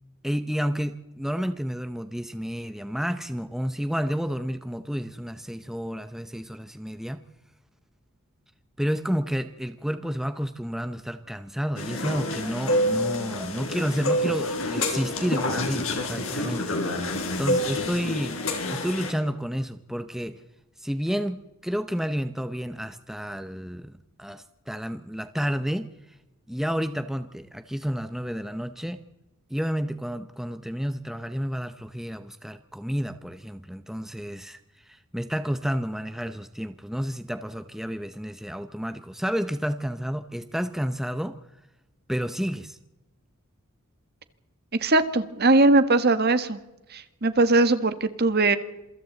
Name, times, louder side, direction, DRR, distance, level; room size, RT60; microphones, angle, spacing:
voice 1, 0.2-7.2 8.8-18.4 18.7-20.4 20.8-23.9 24.2-25.9 26.5-29.0 29.5-41.4 42.1-42.8, equal, ahead, 10 dB, 0.7 m, -30 dB
sound 1, 11.8-19.1, left 1 dB, 70° left, 4.3 m, -28 dB
voice 2, 44.8-46.6 46.9-48.6, right 2 dB, 45° right, 11 dB, 1.4 m, -20 dB
27.0 x 24.0 x 4.0 m, 1.0 s
head